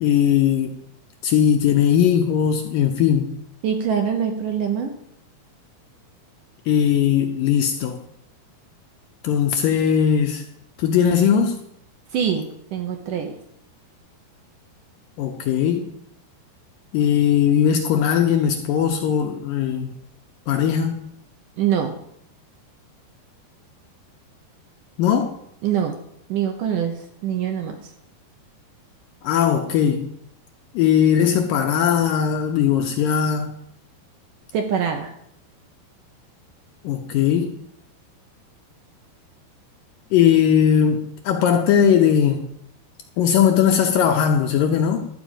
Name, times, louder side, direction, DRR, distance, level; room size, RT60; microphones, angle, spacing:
voice 1, 0.0-0.7 1.2-3.3 6.7-8.0 9.2-10.4 10.8-11.6 15.2-15.9 16.9-19.9 20.5-21.0 25.0-25.3 29.2-30.1 30.7-33.5 36.8-37.5 40.1-42.4 43.2-45.1, left 8 dB, 75° left, 4 dB, 2.2 m, -19 dB
voice 2, 3.6-4.9 12.1-13.4 21.6-22.0 25.6-26.0 26.3-27.8 34.5-35.1, right 8 dB, 70° right, 4 dB, 2.1 m, -24 dB
12.5 x 5.2 x 8.8 m, 0.72 s
omnidirectional pair, 4.7 m